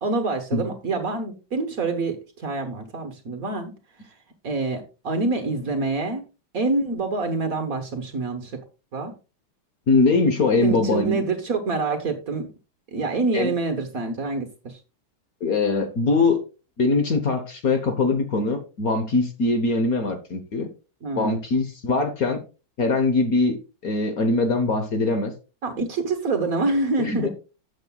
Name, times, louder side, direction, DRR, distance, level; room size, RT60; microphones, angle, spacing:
voice 1, 0.0-3.7 4.4-6.2 6.5-8.6 8.9-9.1 10.6-12.5 12.9-14.8 21.0-21.4 25.6-27.3, right 3 dB, 50° right, 6 dB, 1.5 m, -26 dB
voice 2, 9.9-11.2 13.3-13.5 15.4-16.4 16.8-20.7 21.2-22.4 22.8-23.6 23.8-25.3 27.0-27.3, left 3 dB, 50° left, 7 dB, 1.3 m, -22 dB
13.0 x 8.1 x 2.4 m, 0.32 s
omnidirectional pair, 2.2 m